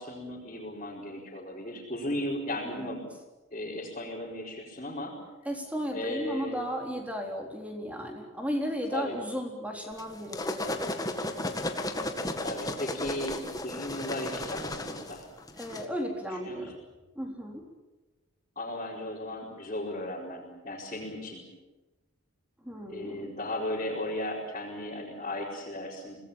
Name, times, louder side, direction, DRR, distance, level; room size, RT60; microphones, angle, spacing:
voice 1, 0.0-3.1 3.5-5.2 5.9-6.6 8.9-9.2 12.4-15.2 16.4-16.7 18.5-21.4 22.9-26.2, left 1 dB, 30° left, -5 dB, 5.0 m, -36 dB
voice 2, 5.5-10.9 15.6-16.8 17.2-17.6 22.6-23.3, equal, 5° right, 2 dB, 3.9 m, -35 dB
sound 1, 10.0-15.9, left 1 dB, 15° left, 1.7 m, -34 dB
26.0 x 19.5 x 8.9 m, 1.1 s
head